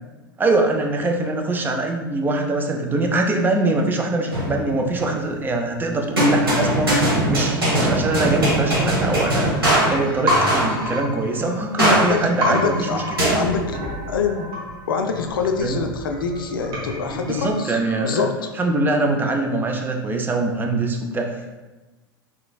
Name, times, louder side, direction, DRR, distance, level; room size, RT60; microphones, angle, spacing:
voice 1, 0.4-13.0 15.6-15.8 17.3-18.3 18.6-21.6, right 2 dB, 15° right, 2 dB, 0.4 m, -23 dB
sound 1, 4.3-5.3 6.2-10.9 11.8-12.4 13.2-14.0, right 1 dB, 80° right, 1.1 m, -21 dB
sound 2, 8.7-18.4 18.7-18.8, equal, 45° right, 1.1 m, -30 dB
voice 2, 11.8-13.8 14.1-14.5 14.9-18.5, left 5 dB, 70° left, 5 dB, 0.4 m, -25 dB
3.8 x 3.2 x 2.2 m, 1.2 s
figure-of-eight pair, 85°, 12 cm